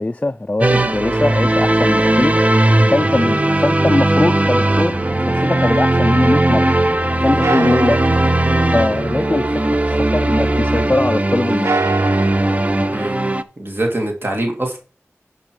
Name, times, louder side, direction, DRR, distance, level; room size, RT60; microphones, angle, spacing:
voice 1, 0.0-5.0 5.3-6.7 7.2-8.0 8.7-11.8, left 2 dB, 25° left, 0.3 m, -21 dB
sound 1, 0.6-13.4, right 1 dB, 25° right, 0.7 m, -17 dB
sound 2, 7.4-11.0 11.4-12.7, right 3 dB, 65° right, 0.4 m, -27 dB
voice 2, 13.6-14.8, right 1 dB, 45° right, 2.3 m, -23 dB
10.5 x 5.4 x 4.8 m
wide cardioid pair, 50°, 5 cm